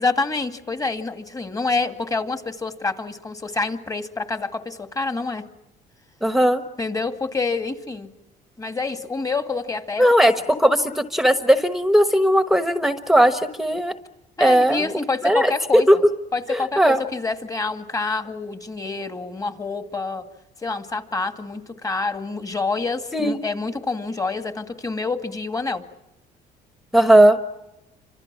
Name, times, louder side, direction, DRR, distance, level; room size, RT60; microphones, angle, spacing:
voice 1, 0.0-5.4 6.8-8.1 8.6-10.0 14.4-15.9 16.3-20.2 20.6-25.8, left 3 dB, 20° left, 8 dB, 2.1 m, -27 dB
voice 2, 6.2-6.6 10.0-13.9 14.4-14.9 15.2-16.0 16.5-17.0 23.1-23.4 26.9-27.4, right 1 dB, ahead, 8 dB, 1.2 m, -17 dB
30.0 x 26.0 x 6.2 m, 0.92 s
cardioid pair, 110°, 17 cm